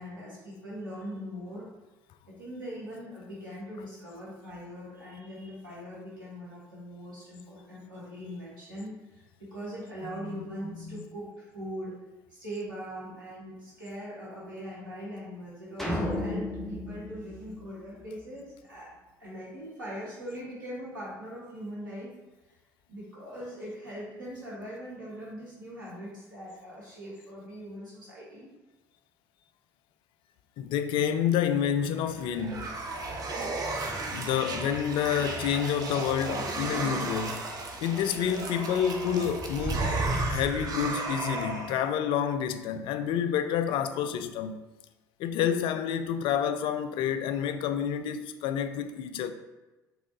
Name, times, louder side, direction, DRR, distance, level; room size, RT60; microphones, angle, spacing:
voice 1, 0.0-1.7 2.3-11.9 12.3-18.9 19.2-22.1 22.9-28.5, equal, 85° right, 1.5 m, -41 dB
sound 1, 15.8-18.2, left 1 dB, ahead, 0.9 m, -33 dB
voice 2, 30.6-32.8 34.1-37.5 37.8-39.9 40.3-44.6 45.2-49.3, left 8 dB, 55° left, 0.3 m, -28 dB
sound 2, 31.9-41.9, right 2 dB, 35° right, 0.7 m, -33 dB
4.7 x 3.5 x 2.9 m
figure-of-eight pair, 55°, 10 cm